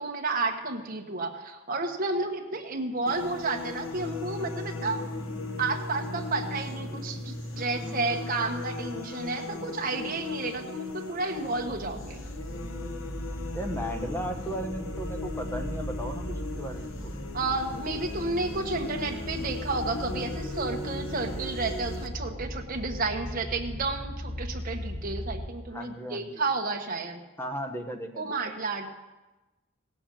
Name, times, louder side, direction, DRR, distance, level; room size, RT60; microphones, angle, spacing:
voice 1, 0.0-5.1 5.6-12.2 17.3-27.2 28.2-28.9, right 3 dB, 45° right, 1 dB, 1.3 m, -31 dB
sound 1, 3.1-22.1, left 3 dB, 70° left, 1.2 m, -39 dB
sound 2, 3.9-8.9, equal, 40° left, 1.6 m, -39 dB
sound 3, 11.4-25.5, equal, 10° right, 1.4 m, -38 dB
voice 2, 13.5-17.1 25.7-26.3 27.4-28.4, equal, 10° left, 5 dB, 1.2 m, -35 dB
17.0 x 7.0 x 7.6 m, 1.1 s
head